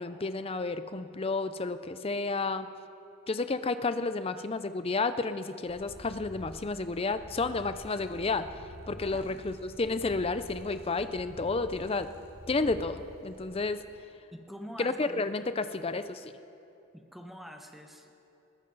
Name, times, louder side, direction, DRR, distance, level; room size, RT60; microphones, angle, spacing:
voice 1, 0.0-2.7 3.3-8.5 8.9-12.1 12.5-13.8 14.8-16.3, left 3 dB, 25° left, 11 dB, 0.5 m, -31 dB
Purr, 5.7-13.7, equal, 45° right, 2.7 m, -48 dB
voice 2, 9.1-9.4 14.3-15.3 16.9-18.1, equal, ahead, 4 dB, 0.9 m, -46 dB
20.5 x 15.0 x 4.0 m, 2.8 s
head